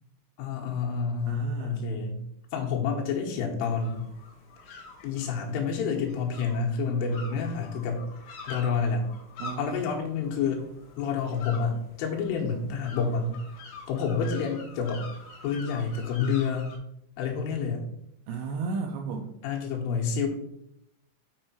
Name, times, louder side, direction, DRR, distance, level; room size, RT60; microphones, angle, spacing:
voice 1, 0.4-2.2 2.5-4.1 4.6-8.0 8.5-9.0 9.6-10.6 11.0-13.4 13.9-15.0 15.4-16.7 17.2-17.8 19.4-20.3, left 5 dB, 90° left, -1 dB, 3.8 m, -29 dB
voice 2, 1.3-1.9 9.4-9.7 18.3-19.3, right 5 dB, 80° right, 2 dB, 2.7 m, -34 dB
sound 1, 3.6-16.8, left 4 dB, 60° left, 2.1 m, -46 dB
6.6 x 6.2 x 4.4 m, 0.76 s
omnidirectional pair, 5.6 m